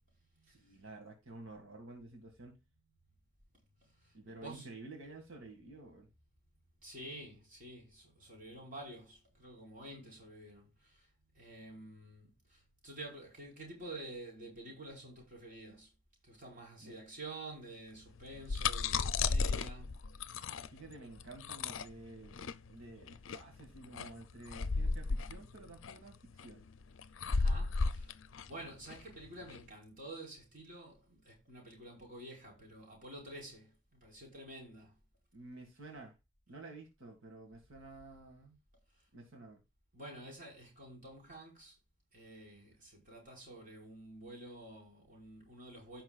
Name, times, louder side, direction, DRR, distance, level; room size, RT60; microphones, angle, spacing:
voice 1, 0.4-2.6 4.1-6.1 16.8-17.0 20.6-26.6 35.3-36.2 36.5-38.6 39.1-39.6, right 2 dB, 85° right, 2.0 m, -51 dB
voice 2, 4.0-4.7 6.8-11.1 11.3-15.9 16.2-20.0 27.3-28.1 28.5-34.9 39.9-41.7 42.1-46.0, right 1 dB, 40° right, 4.8 m, -50 dB
Eating Chips, 18.2-29.6, left 4 dB, 80° left, 0.5 m, -35 dB
15.5 x 5.9 x 2.4 m
head